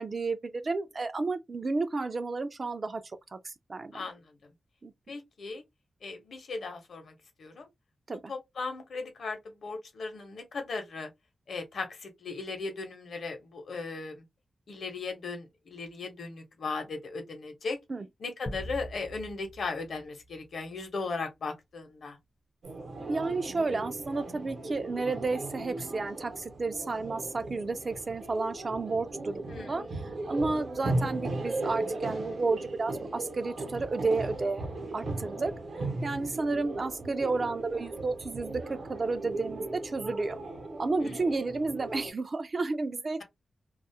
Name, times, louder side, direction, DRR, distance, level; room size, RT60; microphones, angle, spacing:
voice 1, 0.0-3.0 3.3-4.0 4.8-4.9 8.1-8.2 17.9-18.0 23.1-29.8 30.3-34.6 34.9-35.5 36.0-40.4 40.8-43.2, right 3 dB, 35° right, 0.3 m, -31 dB
voice 2, 3.9-4.4 5.1-5.6 6.0-7.7 8.3-11.1 11.5-14.2 14.7-17.8 18.2-22.2 29.5-29.7 41.0-41.2, left 4 dB, 70° left, 0.8 m, -37 dB
sound 1, 18.5-21.0, equal, 35° left, 0.5 m, -43 dB
sound 2, 22.6-42.1, right 2 dB, 75° right, 0.8 m, -37 dB
2.3 x 2.0 x 2.7 m
wide cardioid pair, 155°, 0 cm